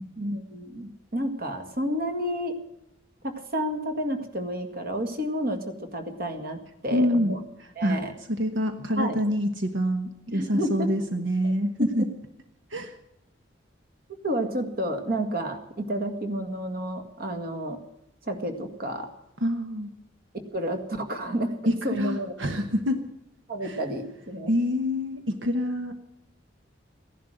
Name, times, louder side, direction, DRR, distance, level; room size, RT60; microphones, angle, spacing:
voice 1, 0.2-2.6 3.2-7.4 7.8-8.1 9.0-9.2 10.3-10.9 11.4-11.5 12.0-12.1 14.2-17.8 18.2-19.1 20.3-21.5 21.8-22.3 23.5-24.5, right 1 dB, 55° right, 6 dB, 2.0 m, -30 dB
voice 2, 6.9-8.0 8.3-12.1 12.7-12.9 19.4-19.9 21.6-23.0 23.6-23.8 24.5-25.9, equal, 80° right, 7 dB, 1.3 m, -26 dB
16.0 x 11.0 x 7.8 m, 0.83 s
head